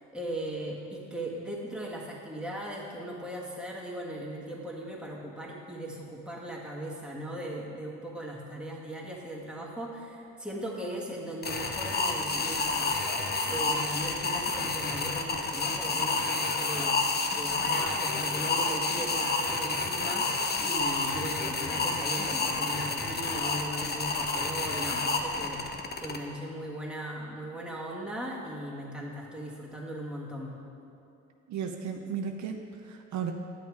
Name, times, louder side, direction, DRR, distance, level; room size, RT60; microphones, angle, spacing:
voice 1, 0.0-13.0 13.5-17.0 17.3-25.6 26.0-30.6, right 1 dB, 5° right, -4 dB, 1.8 m, -38 dB
sound 1, 11.4-26.2, left 3 dB, 35° left, 0.8 m, -29 dB
voice 2, 31.5-33.3, right 7 dB, 70° right, 4 dB, 0.7 m, -35 dB
10.5 x 7.1 x 4.9 m, 2.7 s
cardioid pair, 90°, 30 cm